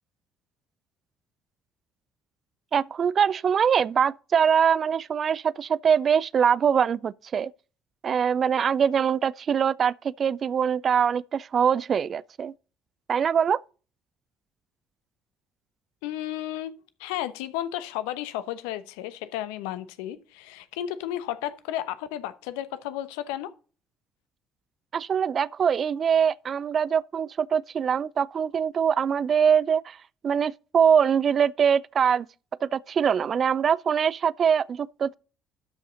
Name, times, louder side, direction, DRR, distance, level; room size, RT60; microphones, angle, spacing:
voice 1, 2.7-7.5 8.0-12.5 13.1-13.6 24.9-30.0 30.2-32.3 32.6-35.1, right 7 dB, 45° right, 0.4 m, -23 dB
voice 2, 16.0-16.7 17.0-23.5, left 12 dB, 70° left, 0.9 m, -33 dB
12.5 x 5.5 x 4.0 m
figure-of-eight pair, 50°, 0 cm